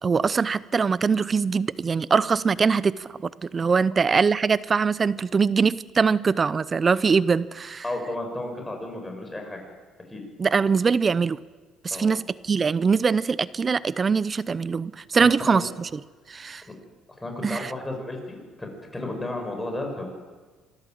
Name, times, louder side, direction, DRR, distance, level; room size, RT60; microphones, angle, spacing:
voice 1, 0.0-7.8 10.4-11.4 11.8-16.0 16.3-16.6 17.4-17.7, right 5 dB, 35° right, 19 dB, 0.6 m, -22 dB
voice 2, 7.8-9.6 10.1-10.2 11.9-12.1 15.2-15.7 17.2-20.1, left 1 dB, 15° left, 3 dB, 5.8 m, -33 dB
26.5 x 13.0 x 7.6 m, 1.4 s
cardioid pair, 90°, 0 cm